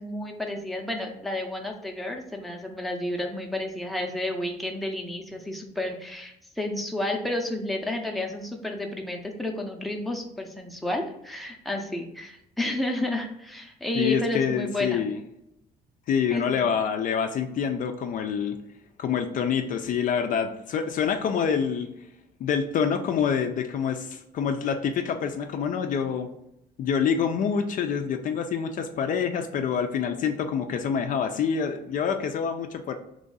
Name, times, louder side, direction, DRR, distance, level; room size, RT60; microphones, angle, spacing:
voice 1, 0.0-15.1 16.3-16.6, left 1 dB, ahead, 1 dB, 0.6 m, -31 dB
voice 2, 14.0-15.2 16.1-18.6 19.0-21.9 22.4-26.3 26.8-32.9, left 7 dB, 50° left, 6 dB, 0.4 m, -26 dB
3.1 x 2.6 x 3.9 m, 0.82 s
cardioid pair, 110°, 17 cm